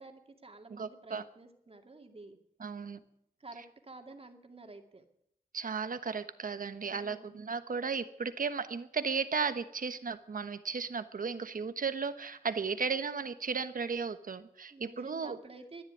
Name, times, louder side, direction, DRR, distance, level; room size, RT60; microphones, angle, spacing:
voice 1, 0.0-2.4 3.4-5.0 6.8-7.4 14.7-15.8, right 3 dB, 40° right, 5 dB, 2.3 m, -51 dB
voice 2, 0.7-1.2 2.6-3.0 5.5-15.4, right 5 dB, 65° right, 11 dB, 1.2 m, -35 dB
14.0 x 10.5 x 9.2 m, 0.73 s
wide cardioid pair, 85°, 15 cm